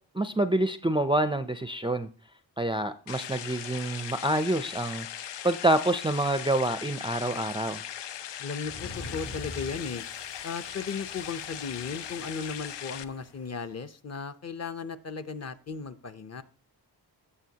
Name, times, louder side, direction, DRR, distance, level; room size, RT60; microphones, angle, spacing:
voice 1, 0.1-2.1 2.6-5.1 5.4-7.8, right 1 dB, 10° right, 9 dB, 0.4 m, -27 dB
sound 1, 3.1-13.0, left 10 dB, 75° left, 0.6 m, -39 dB
voice 2, 8.4-10.0 10.4-16.4, left 5 dB, 35° left, 10 dB, 0.7 m, -36 dB
sound 2, 8.6-13.5, left 2 dB, 60° left, 1.7 m, -45 dB
15.5 x 7.1 x 2.8 m, 0.38 s
wide cardioid pair, 110°, 43 cm